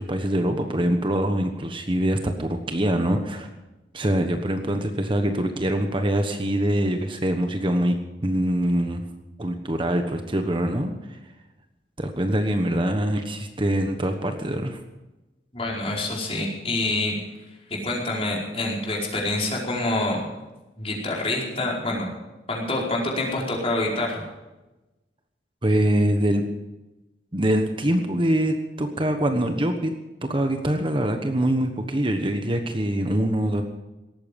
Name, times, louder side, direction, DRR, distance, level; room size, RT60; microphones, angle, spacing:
voice 1, 0.0-3.5 3.9-8.0 8.2-9.0 9.4-11.2 12.0-14.8 25.6-26.4 27.3-29.9 30.2-33.6, right 1 dB, 30° right, 6 dB, 1.2 m, -24 dB
voice 2, 15.5-17.2 17.7-20.2 20.8-22.1 22.5-24.2, left 2 dB, 35° left, -2 dB, 4.8 m, -26 dB
18.5 x 14.0 x 5.3 m, 1.1 s
head